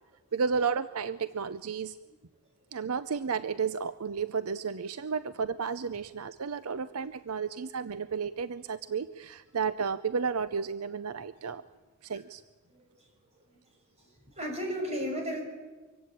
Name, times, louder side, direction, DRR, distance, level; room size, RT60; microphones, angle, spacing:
voice 1, 0.3-2.0 2.7-11.6 12.0-12.4, right 5 dB, 75° right, 14 dB, 0.6 m, -32 dB
voice 2, 12.6-13.6 14.0-15.4, equal, 30° right, 2 dB, 5.6 m, -36 dB
24.5 x 16.0 x 8.8 m, 1.3 s
head